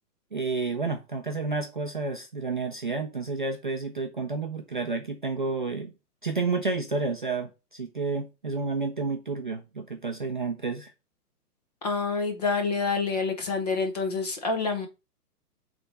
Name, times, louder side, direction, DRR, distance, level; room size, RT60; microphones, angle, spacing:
voice 1, 0.3-5.9 6.2-10.9, right 4 dB, 35° right, 0.5 m, -30 dB
voice 2, 11.8-14.9, left 4 dB, 25° left, 0.9 m, -27 dB
6.7 x 3.5 x 4.1 m
hypercardioid pair, 180°, 47 cm